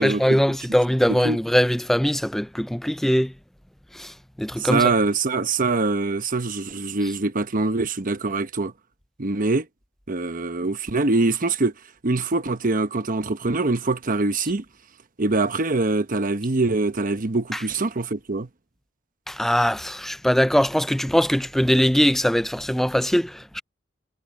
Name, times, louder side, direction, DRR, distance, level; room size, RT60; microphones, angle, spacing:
voice 1, 0.0-3.3 3.9-4.1 4.4-4.9 19.3-23.6, equal, ahead, 0.3 m, -21 dB
voice 2, 4.6-8.7 9.2-9.7 10.1-11.7 12.0-14.6 15.2-18.5, right 3 dB, 45° right, 1.0 m, -23 dB
head